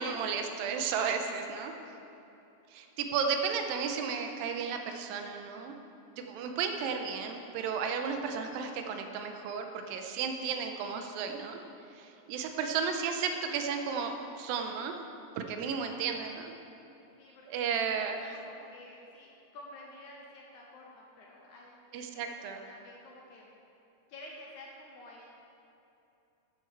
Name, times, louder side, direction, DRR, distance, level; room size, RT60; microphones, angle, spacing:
voice 1, 0.0-1.7 2.7-5.7 6.2-11.6 12.0-15.0 15.4-16.5 17.5-18.2 21.9-22.6, right 6 dB, 85° right, 5 dB, 2.4 m, -33 dB
voice 2, 17.2-21.8 22.1-22.3 22.7-23.5 24.1-25.3, left 1 dB, 70° left, -2 dB, 2.0 m, -51 dB
12.5 x 7.8 x 4.7 m, 2.8 s
omnidirectional pair, 4.2 m